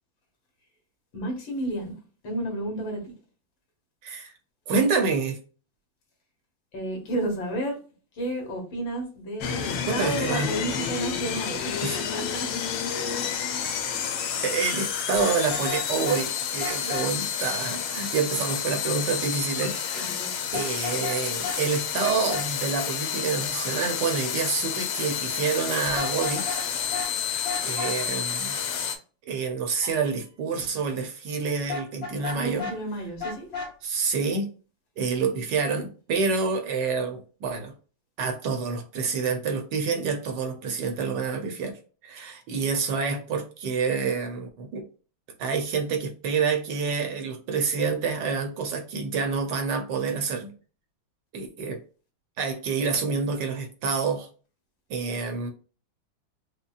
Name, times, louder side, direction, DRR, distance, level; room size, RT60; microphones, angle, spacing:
voice 1, 1.1-2.0 2.2-3.1 6.7-7.8 8.1-12.5 12.9-13.3 19.9-20.5 32.3-33.5, right 1 dB, 70° left, 2.1 m, -32 dB
voice 2, 4.0-4.3 4.7-5.4 9.9-10.5 11.8-12.0 14.4-26.6 27.6-28.6 29.3-32.7 33.8-34.5 35.0-37.7 38.2-44.9 45.4-50.5 51.3-51.8 52.4-54.3 54.9-55.5, right 5 dB, 70° right, 1.2 m, -28 dB
sound 1, 9.4-29.0, left 8 dB, 90° left, 1.5 m, -30 dB
Vehicle horn car horn honking, 15.1-16.2 16.6-17.1 20.5-21.2 21.4-21.6 22.0-22.5 25.9-26.7 26.9-27.1 27.4-27.9 31.7-32.8 33.2-33.7, left 4 dB, 50° left, 1.9 m, -33 dB
sound 2, 16.4-17.1 18.1-18.8 19.6-20.1 22.0-22.5 23.5-24.2 25.7-26.4 27.8-28.5 29.8-30.4, right 3 dB, 85° right, 1.9 m, -47 dB
5.2 x 2.2 x 2.4 m
omnidirectional pair, 2.2 m